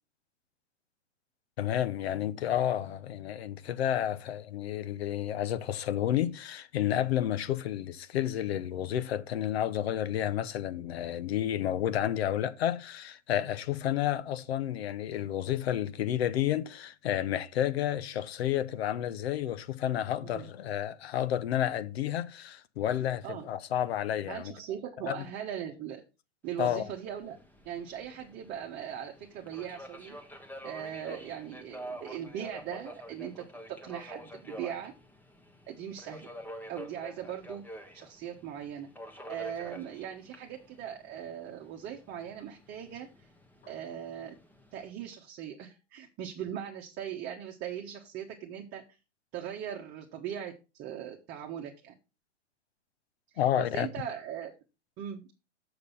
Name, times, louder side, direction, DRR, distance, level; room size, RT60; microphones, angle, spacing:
voice 1, 1.6-24.5 25.1-25.2 26.6-26.9 53.4-53.9, left 11 dB, 60° left, 1.0 m, -31 dB
voice 2, 24.3-26.0 26.4-27.4 27.6-30.2 30.6-34.9 35.7-36.3 36.7-37.6 37.9-38.9 39.3-43.3 43.7-44.4 44.7-48.8 49.3-51.9 53.3-54.6 55.0-55.3, right 9 dB, 30° right, 1.2 m, -39 dB
Subway metro underground, 26.5-44.9, equal, 5° left, 1.2 m, -48 dB
6.9 x 6.6 x 5.5 m
hypercardioid pair, 120°, 36 cm